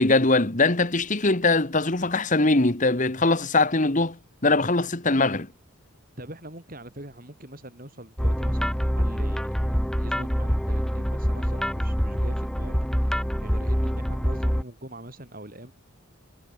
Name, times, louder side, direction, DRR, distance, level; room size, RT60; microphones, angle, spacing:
voice 1, 0.0-5.5, left 2 dB, 35° left, 1.6 m, -22 dB
voice 2, 6.2-9.4 9.7-15.7, right 1 dB, 40° right, 6.8 m, -43 dB
sound 1, 8.2-14.6, equal, 5° left, 3.4 m, -25 dB
head